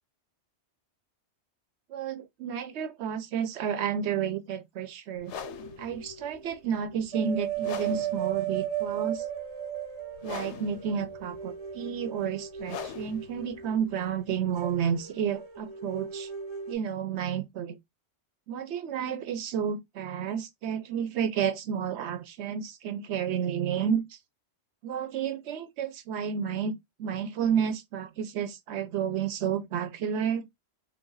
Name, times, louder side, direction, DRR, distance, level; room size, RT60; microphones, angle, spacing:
voice 1, 1.9-5.3 5.8-9.2 10.2-16.3 16.7-17.7 18.5-24.0 24.8-26.7 27.0-30.4, right 8 dB, 80° right, 0.9 m, -31 dB
sound 1, 5.2-15.1, left 9 dB, 90° left, 0.9 m, -44 dB
sound 2, 5.3-6.5 6.8-16.7, right 9 dB, 30° right, 0.7 m, -36 dB
3.2 x 2.5 x 3.8 m
omnidirectional pair, 1.1 m